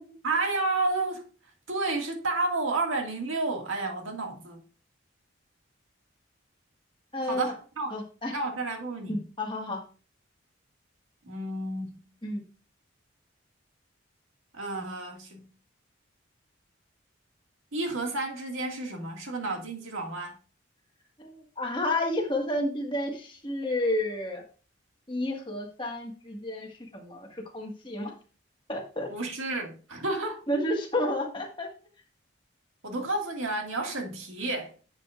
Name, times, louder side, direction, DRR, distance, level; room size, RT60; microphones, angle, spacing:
voice 1, 0.2-1.2 1.7-4.6 7.3-7.9 8.3-9.2 11.3-12.1 14.5-15.5 17.7-20.4 29.1-30.4 32.8-34.7, right 2 dB, 80° right, 2.1 m, -31 dB
voice 2, 7.1-7.5 7.9-8.3 9.1-9.8 12.2-12.4 21.2-24.4 25.1-28.1 28.7-29.1 30.5-31.7, left 1 dB, 25° left, 1.6 m, -31 dB
10.5 x 7.4 x 2.5 m
head